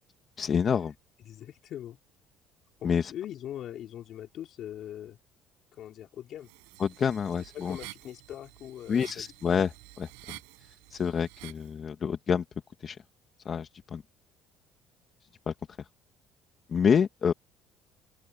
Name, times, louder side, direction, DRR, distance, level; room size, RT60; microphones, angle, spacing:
voice 1, 0.4-0.9 2.8-3.1 6.8-7.8 8.9-10.4 10.9-12.4 12.8-13.0 13.4-14.0 15.5-15.6 16.7-17.3, left 7 dB, 45° left, 1.7 m, -27 dB
voice 2, 1.3-2.0 2.8-5.2 5.7-6.5 7.5-9.3, left 11 dB, 60° left, 3.9 m, -41 dB
sound 1, 6.4-11.7, right 36 dB, 85° right, 4.8 m, -50 dB
open air
supercardioid pair, 70°, 0 cm